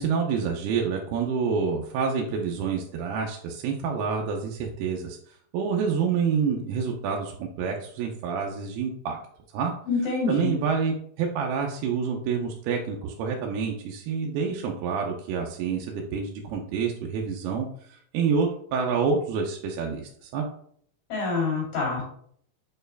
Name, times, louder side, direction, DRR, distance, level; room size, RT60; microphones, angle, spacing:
voice 1, 0.0-5.2 5.5-9.2 9.5-9.7 10.3-20.5, right 5 dB, 90° right, 1 dB, 2.7 m, -28 dB
voice 2, 9.9-10.5 21.1-22.0, left 3 dB, 65° left, -3 dB, 4.2 m, -26 dB
7.4 x 4.4 x 3.4 m, 0.62 s
omnidirectional pair, 4.4 m